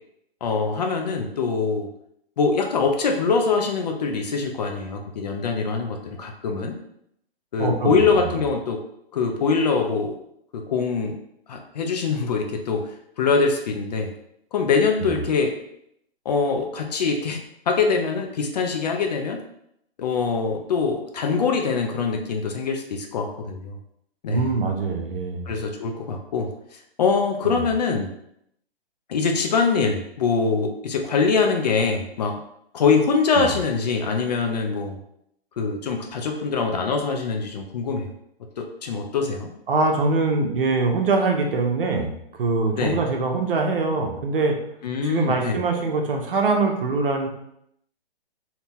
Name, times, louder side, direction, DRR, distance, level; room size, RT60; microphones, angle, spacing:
voice 1, 0.4-1.9 2.4-6.8 7.5-8.8 9.1-10.1 10.5-11.2 11.5-12.8 13.2-14.1 14.5-15.5 16.3-17.4 17.7-19.4 20.0-23.8 24.2-24.5 25.5-26.5 27.0-28.1 29.1-32.4 32.7-35.0 35.6-38.1 38.6-39.5 42.7-43.0 44.8-45.6, left 5 dB, 40° left, 4 dB, 0.5 m, -23 dB
voice 2, 7.6-8.3 15.0-15.2 24.3-25.5 27.4-27.7 33.4-33.5 39.7-44.6 45.0-47.3, right 3 dB, 60° right, 2 dB, 0.8 m, -23 dB
2.8 x 2.7 x 3.5 m, 0.75 s
hypercardioid pair, 140°, 32 cm